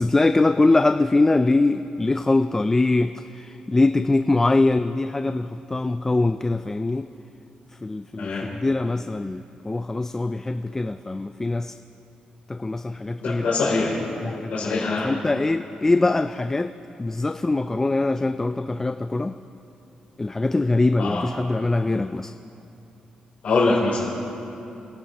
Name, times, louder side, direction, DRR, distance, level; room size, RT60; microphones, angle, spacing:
voice 1, 0.0-7.1 7.8-11.7 12.5-13.5 14.2-16.7 17.0-19.3 20.2-22.3, left 2 dB, 20° left, 9 dB, 0.3 m, -23 dB
voice 2, 13.2-14.0 14.5-15.1 21.0-21.2 23.4-24.1, left 3 dB, 65° left, -7 dB, 3.1 m, -23 dB
29.5 x 11.0 x 2.9 m, 2.8 s
cardioid pair, 105°, 3 cm